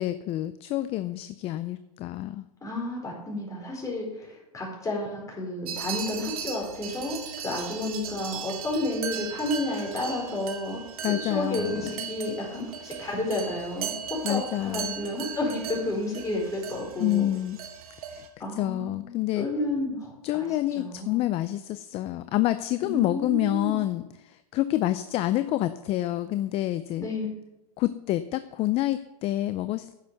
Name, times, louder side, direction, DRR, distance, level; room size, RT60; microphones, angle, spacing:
voice 1, 0.0-2.4 11.0-12.1 14.2-15.0 17.0-17.6 18.1-18.2 18.5-19.5 20.2-27.1 27.8-30.0, left 15 dB, 30° left, 13 dB, 0.4 m, -28 dB
voice 2, 2.6-17.3 18.4-20.5 20.7-21.2 22.8-23.8 27.0-27.3, left 1 dB, 15° left, -2 dB, 4.7 m, -31 dB
sound 1, 5.7-18.3, right 7 dB, 75° right, 1.8 m, -38 dB
10.0 x 6.9 x 6.9 m, 0.93 s
hypercardioid pair, 120°, 19 cm